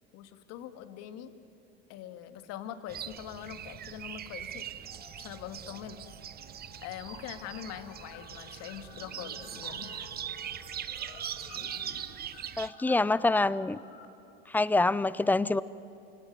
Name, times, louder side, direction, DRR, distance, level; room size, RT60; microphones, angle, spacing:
voice 1, 0.1-1.4 1.9-4.7 5.2-6.0 6.8-10.1, left 10 dB, 55° left, 9 dB, 2.0 m, -43 dB
sound 1, 2.9-12.7, right 10 dB, 30° right, 0.9 m, -41 dB
sound 2, 4.8-5.8 6.0-14.1, left 6 dB, 80° left, 2.9 m, -52 dB
voice 2, 12.6-13.8 14.5-15.6, left 2 dB, 5° left, 19 dB, 0.5 m, -26 dB
29.0 x 18.0 x 9.4 m, 2.7 s
hypercardioid pair, 95°, 31 cm